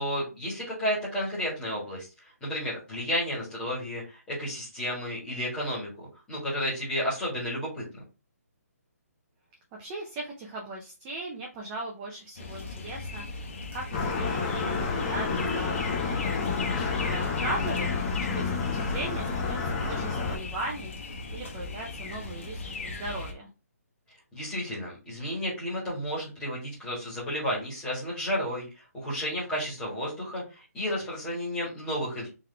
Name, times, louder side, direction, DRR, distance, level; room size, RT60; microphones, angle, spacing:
voice 1, 0.0-2.1 2.4-8.0 24.3-28.7 28.9-32.3, equal, 5° left, -7 dB, 1.7 m, -32 dB
voice 2, 9.8-16.3 16.6-23.5, right 2 dB, 10° right, -1 dB, 0.4 m, -38 dB
sound 1, 12.4-23.3, left 3 dB, 50° left, 1.2 m, -38 dB
sound 2, 13.9-20.4, left 4 dB, 25° left, 0.8 m, -29 dB
3.9 x 3.1 x 3.3 m, 0.30 s
hypercardioid pair, 170°, 9 cm